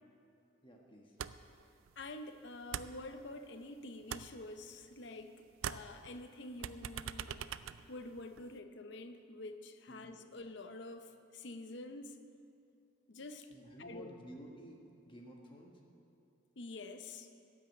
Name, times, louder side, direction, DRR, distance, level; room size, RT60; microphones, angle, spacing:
voice 1, 0.6-1.2 9.9-10.0 13.5-14.8 15.0-15.8, equal, 25° left, 0 dB, 1.3 m, -53 dB
sound 1, 1.2-1.6 1.9-3.6 3.9-5.3 5.5-8.6, right 9 dB, 80° right, 0.3 m, -44 dB
voice 2, 2.0-5.4 5.6-7.4 7.9-12.2 13.1-13.5 13.8-14.1 16.6-17.3, left 2 dB, 60° left, 8 dB, 0.7 m, -47 dB
13.0 x 6.3 x 8.2 m, 2.5 s
head